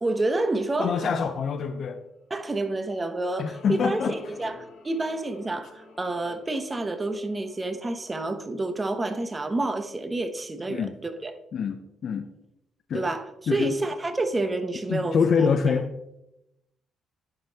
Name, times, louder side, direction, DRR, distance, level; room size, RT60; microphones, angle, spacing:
voice 1, 0.0-1.1 2.3-4.0 4.3-11.3 12.9-15.5, right 2 dB, 25° right, 0.8 m, -29 dB
voice 2, 0.8-2.0 3.4-4.2 10.7-10.9 11.5-12.3 12.9-13.1 13.5-13.7 14.9-15.9, left 6 dB, 60° left, 0.6 m, -25 dB
sound 1, 2.7-9.2, left 4 dB, 80° left, 1.4 m, -49 dB
10.5 x 5.3 x 2.8 m
cardioid pair, 90°, 0 cm